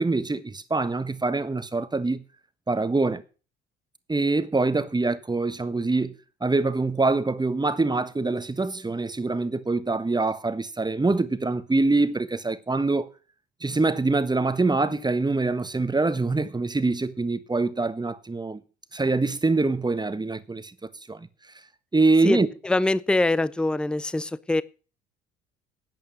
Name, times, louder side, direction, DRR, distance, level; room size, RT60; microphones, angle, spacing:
voice 1, 0.0-2.2 2.7-3.2 4.1-13.1 13.6-18.6 18.9-21.3 21.9-22.5, right 3 dB, 15° right, 1.4 m, -24 dB
voice 2, 22.6-24.6, left 2 dB, 5° left, 0.6 m, -23 dB
11.5 x 9.1 x 6.5 m
figure-of-eight pair, 60°, 31 cm